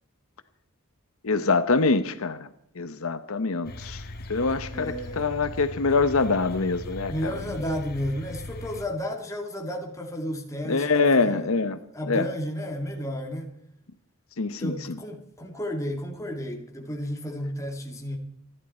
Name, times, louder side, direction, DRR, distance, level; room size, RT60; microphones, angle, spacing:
voice 1, 1.2-2.5 2.8-7.3 10.7-11.8 12.1-12.3 14.4-14.8, left 4 dB, 75° left, 12 dB, 0.9 m, -24 dB
sound 1, 3.6-8.9, left 1 dB, 45° left, 1.6 m, -39 dB
voice 2, 4.7-5.3 7.1-11.5 11.9-13.5 14.6-18.2, equal, 15° left, 2 dB, 2.3 m, -32 dB
28.0 x 11.0 x 4.4 m, 0.73 s
head